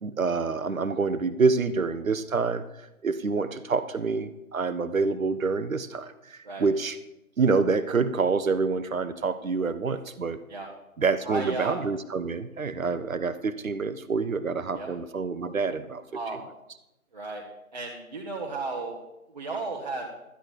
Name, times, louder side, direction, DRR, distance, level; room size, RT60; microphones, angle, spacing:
voice 1, 0.0-2.6 3.0-7.0 7.4-10.4 11.0-16.2, right 4 dB, 65° right, 13 dB, 1.0 m, -27 dB
voice 2, 11.2-11.8 14.7-14.9 16.1-16.4 17.1-17.4 17.7-20.1, right 3 dB, 30° right, -3 dB, 1.1 m, -34 dB
12.5 x 9.3 x 4.8 m, 0.90 s
figure-of-eight pair, 160°, 43 cm